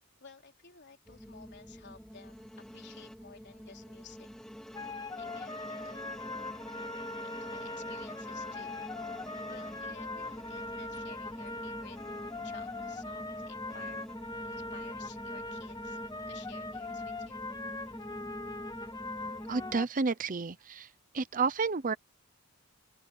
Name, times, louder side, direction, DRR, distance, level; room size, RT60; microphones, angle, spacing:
voice 1, 0.2-4.3 5.1-6.4 7.2-8.8 9.2-12.0 12.4-14.0 14.4-17.5, left 5 dB, 50° left, 3.9 m, -55 dB
sound 1, 1.1-19.8, equal, 5° left, 2.8 m, -46 dB
sound 2, 4.7-19.8, left 2 dB, 20° left, 1.0 m, -41 dB
voice 2, 19.5-20.9 21.1-21.9, right 4 dB, 40° right, 0.6 m, -30 dB
open air
head